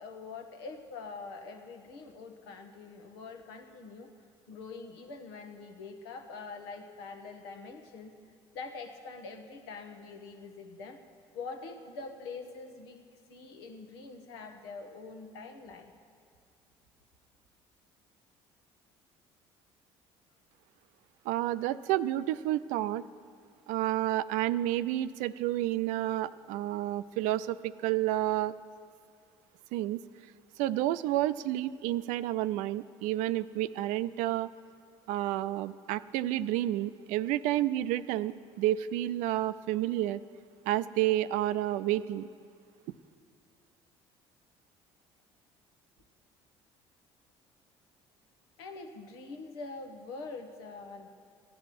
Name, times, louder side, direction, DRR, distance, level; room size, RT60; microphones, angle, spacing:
voice 1, 0.0-4.1 4.5-8.1 8.5-11.0 11.3-13.0 13.3-15.9 48.6-51.1, left 4 dB, 85° left, 6 dB, 1.2 m, -44 dB
voice 2, 21.3-23.0 23.7-28.5 29.7-30.0 30.6-34.5 35.1-40.2 40.7-42.3, right 14 dB, 75° right, 15 dB, 0.4 m, -30 dB
15.0 x 10.5 x 5.9 m, 2.2 s
hypercardioid pair, 70°, 13 cm